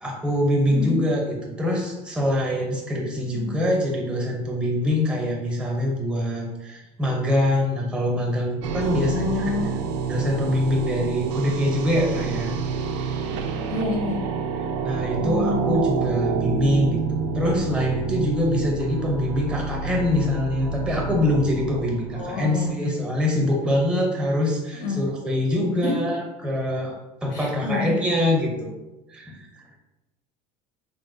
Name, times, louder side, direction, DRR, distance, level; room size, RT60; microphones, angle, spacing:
voice 1, 0.0-9.5 10.1-12.5 14.8-26.9 27.2-28.7 29.1-29.6, left 1 dB, 5° right, -1 dB, 0.6 m, -24 dB
voice 2, 0.7-1.0 3.3-3.6 8.8-9.7 13.7-14.2 15.2-15.8 22.1-22.7 24.8-25.0 25.8-25.9 27.3-28.0, left 3 dB, 75° left, 1 dB, 0.6 m, -28 dB
sound 1, 8.6-22.7, right 5 dB, 90° right, 0.4 m, -28 dB
3.8 x 2.2 x 2.5 m, 1.0 s
cardioid pair, 140°, 14 cm